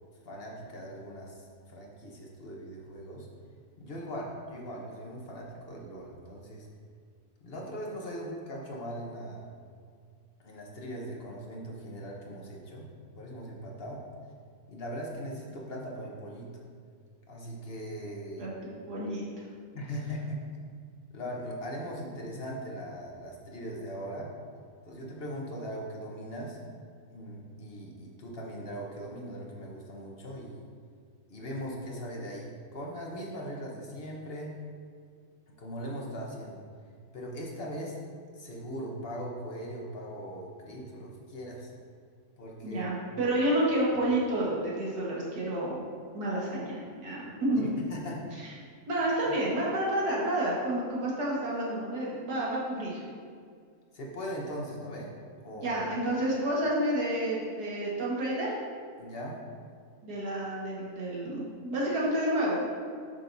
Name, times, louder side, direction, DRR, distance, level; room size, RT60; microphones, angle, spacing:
voice 1, 0.2-3.3 3.8-6.7 7.4-9.4 10.4-12.9 13.2-14.0 14.7-16.5 17.3-18.5 19.7-20.4 21.1-24.3 24.8-26.6 27.1-30.7 31.3-34.6 35.5-36.6 37.1-38.0 38.3-41.7 42.4-42.9 43.2-43.4 47.5-48.5 49.3-49.4 53.9-55.1 55.4-55.7 59.0-59.4, equal, 45° left, -2 dB, 1.1 m, -40 dB
voice 2, 18.4-19.2 42.6-45.9 46.1-47.8 48.9-53.0 55.6-58.6 60.0-62.6, right 1 dB, 85° right, -5 dB, 2.1 m, -30 dB
8.6 x 6.3 x 2.6 m, 2.1 s
omnidirectional pair, 1.6 m